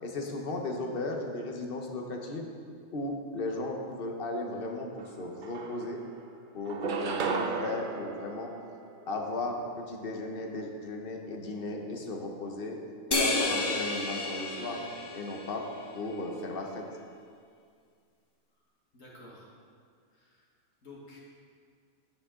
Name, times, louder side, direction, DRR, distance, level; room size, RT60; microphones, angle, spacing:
voice 1, 0.0-2.5 2.9-6.0 6.5-8.5 9.1-12.8 13.1-14.8 15.1-15.6 15.9-16.9, left 2 dB, 40° left, 2 dB, 1.1 m, -35 dB
sound 1, 5.0-5.1 5.4-6.2 6.7-9.3, right 5 dB, 55° right, 0.5 m, -34 dB
sound 2, 13.1-15.8, left 2 dB, 20° left, 0.8 m, -31 dB
voice 2, 14.5-15.0 18.9-19.5 20.1-20.4 20.8-21.2, left 2 dB, 60° left, -5 dB, 1.9 m, -52 dB
9.8 x 8.8 x 3.8 m, 2.2 s
omnidirectional pair, 1.6 m